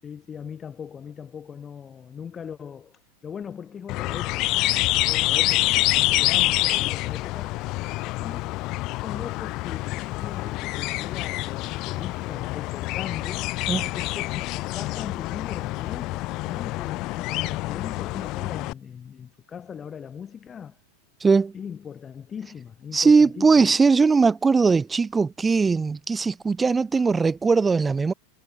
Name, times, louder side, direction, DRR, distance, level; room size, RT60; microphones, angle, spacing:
voice 1, 0.0-7.6 8.2-8.5 8.9-13.5 14.0-20.8 21.5-23.6 26.9-27.1, left 7 dB, 25° left, 6.2 m, -39 dB
sound 1, 3.9-18.7, left 20 dB, 50° left, 0.7 m, -27 dB
voice 2, 21.2-21.5 22.9-28.1, right 4 dB, 15° right, 1.9 m, -20 dB
hypercardioid pair, 115°, 0 cm